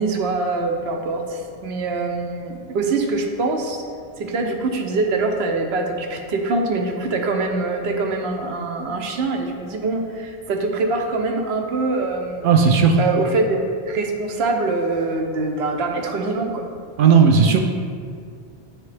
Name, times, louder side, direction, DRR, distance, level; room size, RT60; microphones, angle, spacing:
voice 1, 0.0-3.8 4.2-12.5 13.0-16.7, right 3 dB, 80° right, 3 dB, 0.9 m, -24 dB
voice 2, 12.4-13.0 17.0-17.6, right 6 dB, 60° right, 3 dB, 0.6 m, -14 dB
9.0 x 3.2 x 3.3 m, 2.1 s
omnidirectional pair, 1.1 m